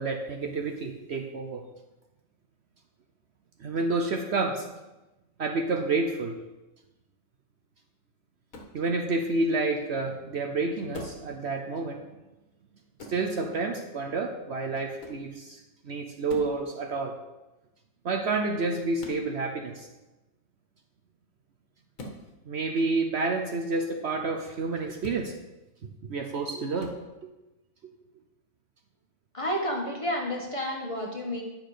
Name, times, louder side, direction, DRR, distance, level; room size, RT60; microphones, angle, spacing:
voice 1, 0.0-1.6 3.6-4.7 5.4-6.4 8.7-12.0 13.1-17.1 18.0-19.9 22.5-25.3 26.0-27.0, right 3 dB, 55° right, 4 dB, 1.0 m, -29 dB
sound 1, 8.5-8.8 10.9-11.3 13.0-13.2 15.0-15.3 16.3-16.6 19.0-19.2 22.0-22.2 25.0-25.2 26.8-27.0, left 2 dB, 75° left, 1.8 m, -42 dB
voice 2, 29.3-31.4, equal, 25° left, -1 dB, 1.4 m, -30 dB
10.0 x 6.4 x 4.9 m, 1.0 s
omnidirectional pair, 1.4 m